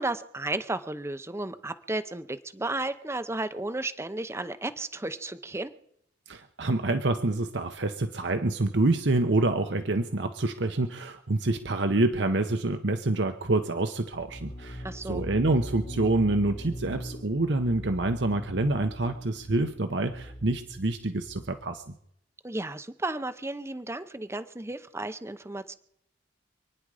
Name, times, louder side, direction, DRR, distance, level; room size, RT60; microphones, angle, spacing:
voice 1, 0.0-5.7 14.8-15.2 22.4-25.7, right 2 dB, 15° right, 10 dB, 0.7 m, -33 dB
voice 2, 6.3-21.9, right 2 dB, 70° right, 6 dB, 1.0 m, -27 dB
sound 1, 14.1-21.8, equal, 40° left, 1.5 m, -41 dB
27.5 x 10.0 x 4.9 m, 0.71 s
head